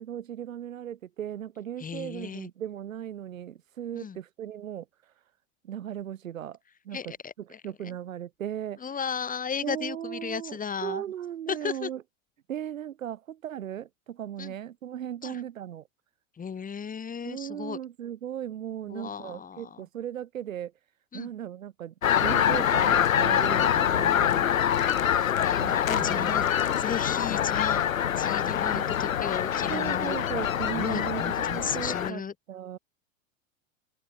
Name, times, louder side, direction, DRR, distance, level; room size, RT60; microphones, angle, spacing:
voice 1, 0.0-4.9 5.6-6.6 6.8-7.1 7.6-8.8 9.6-12.0 12.5-15.8 17.2-20.7 21.1-21.9 22.2-24.4 25.6-26.5 28.5-29.0 29.7-32.2 32.5-32.8, right 10 dB, 75° right, 4.4 m, -37 dB
voice 2, 1.8-2.5 3.9-4.2 6.9-8.0 8.8-11.0 11.5-11.9 14.4-14.5 15.2-15.4 16.4-17.8 18.9-19.9 21.1-21.3 23.8-24.6 25.4-26.4 26.8-27.8 28.2-30.2 30.7-32.3, left 6 dB, 20° left, 4.6 m, -35 dB
sound 1, 22.0-32.1, left 9 dB, 80° left, 2.4 m, -25 dB
open air
hypercardioid pair, 100°, 40 cm